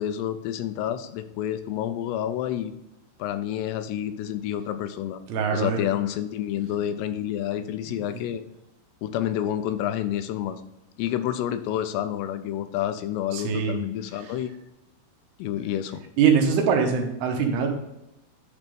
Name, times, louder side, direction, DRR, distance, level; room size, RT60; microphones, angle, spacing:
voice 1, 0.0-2.7 3.2-5.2 5.5-8.4 9.0-10.6 11.0-14.5 15.4-16.0, left 11 dB, 85° left, 10 dB, 2.8 m, -29 dB
voice 2, 5.3-5.8 7.9-8.2 13.3-13.8 14.2-14.3 16.2-17.7, right 6 dB, 75° right, 3 dB, 3.0 m, -23 dB
10.5 x 3.5 x 5.2 m, 0.88 s
omnidirectional pair, 4.8 m